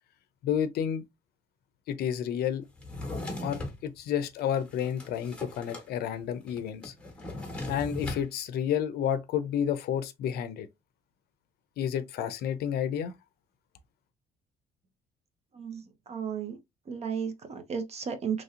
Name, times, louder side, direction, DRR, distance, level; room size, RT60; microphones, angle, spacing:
voice 1, 0.4-1.0 1.9-2.7 3.4-6.9 7.7-10.7 11.8-13.1, left 9 dB, 70° left, 0.5 m, -30 dB
Drawer open or close, 2.8-3.8 4.4-5.9 6.1-6.2 6.5-8.3, left 2 dB, 5° left, 1.3 m, -38 dB
voice 2, 15.5-16.6 16.9-18.4, right 7 dB, 40° right, 0.7 m, -34 dB
3.1 x 2.7 x 2.4 m
cardioid pair, 110°, 17 cm